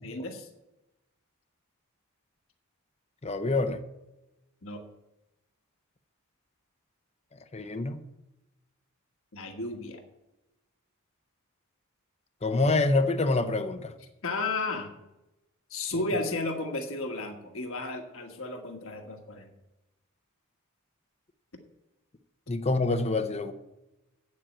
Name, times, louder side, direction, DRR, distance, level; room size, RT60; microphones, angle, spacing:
voice 1, 0.0-0.5 4.6-4.8 9.3-10.0 14.2-14.9 15.7-19.5, left 2 dB, 65° left, 4 dB, 1.4 m, -33 dB
voice 2, 3.2-3.8 7.5-8.0 12.4-13.9 22.5-23.5, left 2 dB, 30° left, 9 dB, 0.7 m, -26 dB
8.5 x 7.5 x 8.8 m, 0.96 s
head